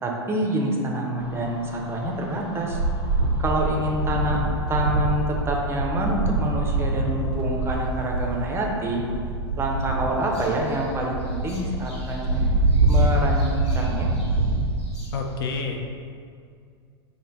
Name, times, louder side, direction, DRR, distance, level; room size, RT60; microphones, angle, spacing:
voice 1, 0.0-2.8 3.4-4.4 4.7-9.0 9.6-12.4 12.9-14.1, right 1 dB, 20° right, 0 dB, 0.5 m, -27 dB
sound 1, 1.2-9.1, left 3 dB, 30° left, 1.1 m, -43 dB
sound 2, 2.7-14.8, right 2 dB, 75° right, 0.4 m, -24 dB
sound 3, 10.2-15.3, left 1 dB, 85° left, 1.1 m, -50 dB
voice 2, 15.1-16.0, left 4 dB, 60° left, 3 dB, 0.4 m, -29 dB
4.4 x 2.1 x 3.3 m, 2.2 s
figure-of-eight pair, 90°, 14 cm